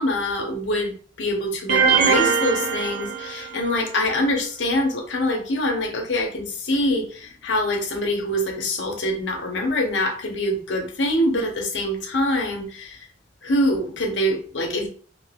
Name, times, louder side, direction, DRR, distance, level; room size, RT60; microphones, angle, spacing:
voice 1, 0.0-13.0 13.4-14.9, left 1 dB, 75° left, 0.7 m, -24 dB
sound 1, 1.7-3.8, right 6 dB, 65° right, 0.6 m, -21 dB
3.6 x 2.5 x 2.2 m
head